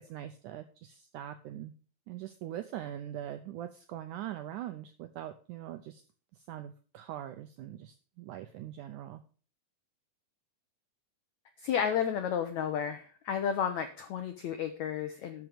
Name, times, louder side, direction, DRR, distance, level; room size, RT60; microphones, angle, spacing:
voice 1, 0.1-1.7 2.1-6.0 6.5-7.9 8.3-9.2, right 12 dB, 85° right, 9 dB, 1.8 m, -42 dB
voice 2, 11.6-15.5, left 8 dB, 80° left, 8 dB, 1.6 m, -32 dB
12.5 x 6.0 x 5.1 m, 0.39 s
omnidirectional pair, 4.4 m